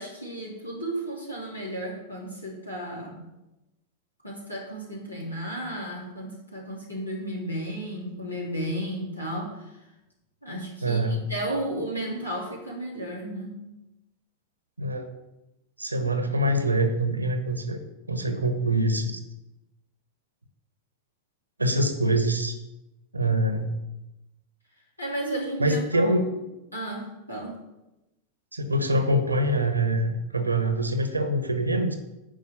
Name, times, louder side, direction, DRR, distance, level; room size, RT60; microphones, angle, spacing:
voice 1, 0.0-3.3 4.2-9.7 10.4-13.6 25.0-26.1 26.7-27.6, right 1 dB, 85° left, -3 dB, 3.1 m, -33 dB
voice 2, 10.8-11.2 14.8-15.1 15.8-17.8 18.1-19.2 21.6-22.5 23.1-23.7 25.6-26.3 28.5-32.0, right 1 dB, 80° right, 7 dB, 1.2 m, -24 dB
10.5 x 4.9 x 7.7 m, 0.95 s
figure-of-eight pair, 90°, 0 cm